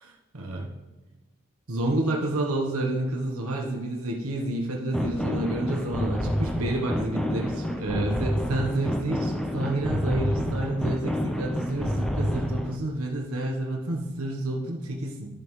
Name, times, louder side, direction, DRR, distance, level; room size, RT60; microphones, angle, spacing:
voice 1, 0.0-0.7 1.7-15.4, right 1 dB, 85° right, 0 dB, 1.1 m, -29 dB
sound 1, 4.9-12.8, equal, ahead, 0.6 m, -28 dB
14.5 x 5.4 x 3.2 m, 1.2 s
head